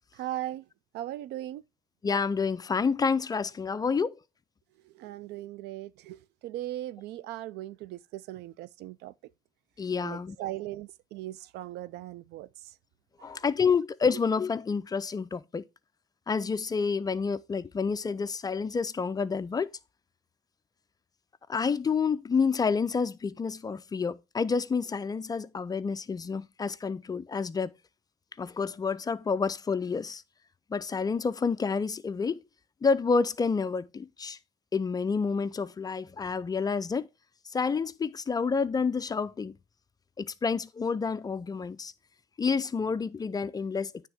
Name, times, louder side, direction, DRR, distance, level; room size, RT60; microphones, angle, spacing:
voice 1, 0.1-0.6 0.9-1.6 4.9-9.1 10.0-12.5 13.2-13.4, right 14 dB, 80° right, 0.4 m, -38 dB
voice 2, 2.0-4.2 9.8-10.4 13.2-15.6 16.3-19.7 21.5-27.7 28.4-30.2 30.7-32.4 32.8-34.4 34.7-37.1 37.5-39.6 40.2-41.9 42.4-43.9, left 5 dB, 20° left, 0.4 m, -29 dB
9.1 x 3.5 x 4.4 m
cardioid pair, 110°, 17 cm